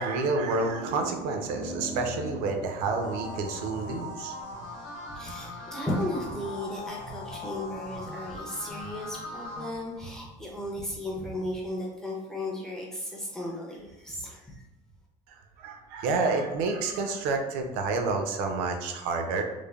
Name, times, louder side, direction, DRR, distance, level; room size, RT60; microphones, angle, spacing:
voice 1, 0.0-4.4 15.3-19.4, right 3 dB, 75° right, 4 dB, 0.4 m, -29 dB
sound 1, 2.8-9.7, left 1 dB, 85° left, 0.8 m, -40 dB
voice 2, 5.1-14.6, left 1 dB, 5° left, -3 dB, 0.4 m, -35 dB
3.1 x 2.1 x 2.2 m, 1.0 s
cardioid pair, 170°, 14 cm